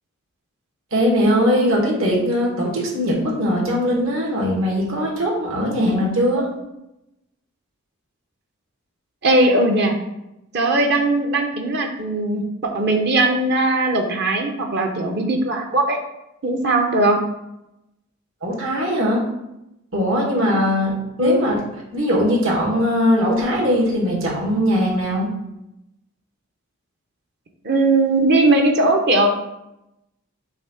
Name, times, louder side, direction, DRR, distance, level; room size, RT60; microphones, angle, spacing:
voice 1, 0.9-6.5 18.4-19.2 19.9-20.9 21.2-21.6 21.9-25.3, equal, 75° right, -2 dB, 2.1 m, -20 dB
voice 2, 9.2-9.9 10.5-16.0 16.4-17.2 21.2-21.4 27.6-29.3, right 2 dB, 50° right, 3 dB, 0.8 m, -19 dB
7.0 x 2.8 x 5.7 m, 0.88 s
head